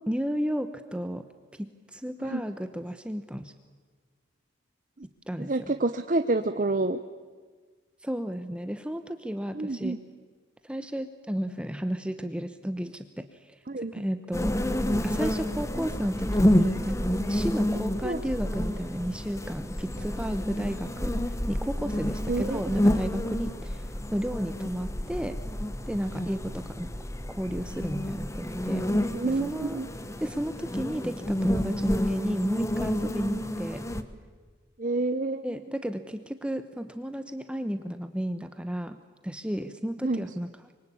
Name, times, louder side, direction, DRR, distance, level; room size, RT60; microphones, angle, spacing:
voice 1, 0.1-1.2 1.5-3.5 5.3-5.7 8.0-10.0 10.6-14.5 15.0-17.0 17.3-21.2 21.5-25.4 25.9-26.9 27.3-28.9 29.3-29.8 30.2-33.9 35.4-39.0 39.2-40.5, equal, 5° right, 9 dB, 0.9 m, -32 dB
voice 2, 5.4-7.0 9.5-10.0 13.7-14.1 18.0-18.2 22.3-22.7 29.1-29.9 34.8-35.8 40.0-40.3, right 2 dB, 45° right, 9 dB, 0.8 m, -28 dB
sound 1, 14.3-34.0, left 1 dB, 15° left, 1.1 m, -29 dB
25.0 x 24.0 x 8.6 m, 1.5 s
head